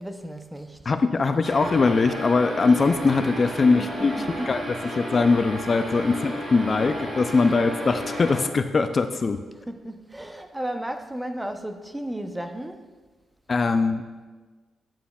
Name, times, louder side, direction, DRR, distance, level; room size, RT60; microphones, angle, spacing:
voice 1, 0.0-0.9 3.7-4.6 9.6-12.9, right 1 dB, 10° right, 0.6 m, -34 dB
voice 2, 0.9-4.1 4.5-4.6 4.9-9.4 13.5-14.0, left 4 dB, 40° left, 0.3 m, -21 dB
sound 1, 1.4-8.4, equal, 50° right, 2.1 m, -33 dB
9.1 x 8.7 x 2.3 m
cardioid pair, 90°, 0 cm